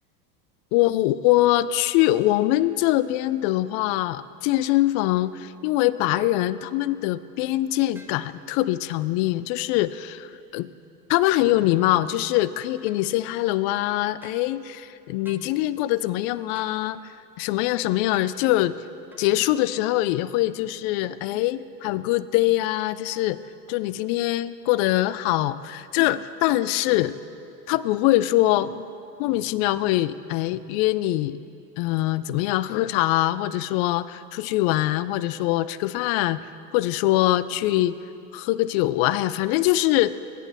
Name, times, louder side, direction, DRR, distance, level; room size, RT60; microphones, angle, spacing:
voice 1, 0.7-10.7 11.1-17.1 17.4-18.7 19.2-23.4 23.7-27.2 27.7-28.9 29.2-31.4 31.8-36.4 36.7-38.0 38.3-40.2, left 15 dB, 60° left, 16 dB, 0.6 m, -23 dB
sound 1, 7.9-8.2 12.9-13.0 14.2-14.4 15.2-15.5 16.5-16.8 18.1-18.3 19.1-19.3, right 1 dB, 5° right, 0.9 m, -50 dB
20.5 x 9.3 x 3.4 m, 2.6 s
hypercardioid pair, 80°, 50 cm